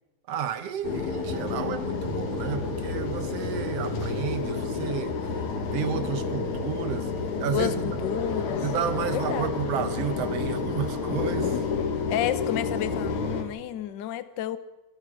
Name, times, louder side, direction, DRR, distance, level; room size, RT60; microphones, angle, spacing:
voice 1, 0.3-5.4 5.7-7.1 7.4-8.0 8.6-11.7, right 9 dB, 65° right, 2.0 m, -32 dB
Skytrain Acceleration FS, 0.8-13.4, left 4 dB, 80° left, 3.4 m, -30 dB
voice 2, 7.5-8.6 9.1-9.5 12.1-14.6, left 11 dB, 60° left, 1.1 m, -30 dB
27.0 x 19.0 x 5.1 m
omnidirectional pair, 3.3 m